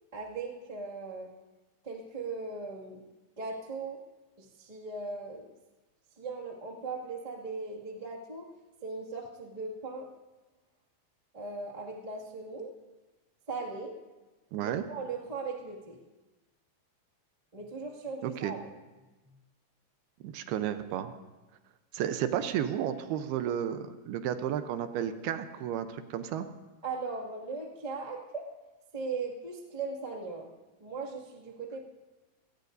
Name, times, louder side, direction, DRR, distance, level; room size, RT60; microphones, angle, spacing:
voice 1, 0.1-1.3 1.8-3.0 3.4-4.0 4.4-5.5 6.2-8.5 8.8-10.1 11.3-12.7 13.5-13.9 14.6-16.0 17.5-18.6 26.8-28.4 28.9-30.5 30.8-31.8, right 4 dB, 20° right, -3 dB, 1.1 m, -38 dB
voice 2, 14.5-14.8 18.2-18.5 20.2-21.1 21.9-26.5, right 10 dB, 80° right, 9 dB, 2.7 m, -32 dB
28.0 x 18.0 x 2.7 m, 1.1 s
omnidirectional pair, 4.5 m